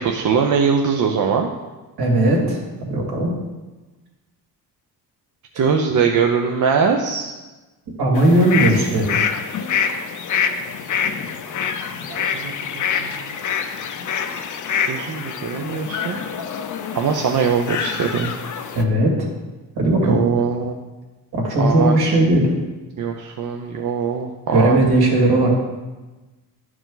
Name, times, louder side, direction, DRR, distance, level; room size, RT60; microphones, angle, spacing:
voice 1, 0.0-1.5 5.6-7.3 12.1-12.8 14.9-16.2 16.9-18.3 20.0-20.7 21.6-22.2 23.0-24.8, right 6 dB, 50° right, 3 dB, 0.7 m, -21 dB
voice 2, 2.0-3.3 8.0-9.3 18.7-19.3 19.8-20.2 21.3-22.5 24.5-25.6, right 1 dB, 75° right, -2 dB, 2.5 m, -17 dB
sound 1, 8.1-18.8, left 7 dB, 50° left, 0.7 m, -26 dB
11.0 x 4.8 x 3.9 m, 1.2 s
cardioid pair, 115°, 38 cm